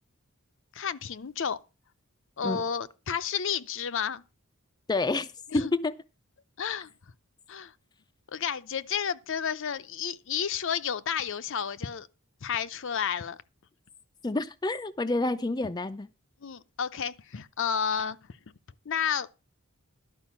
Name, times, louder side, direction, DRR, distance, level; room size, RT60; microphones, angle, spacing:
voice 1, 0.7-1.6 2.4-4.2 5.5-5.7 6.6-6.9 7.5-7.7 8.3-12.1 12.4-13.4 16.4-18.2 18.9-19.3, left 7 dB, 60° left, 0.6 m, -31 dB
voice 2, 4.9-5.3 5.5-6.0 14.2-16.1, left 2 dB, 20° left, 0.4 m, -28 dB
11.5 x 5.2 x 7.3 m
head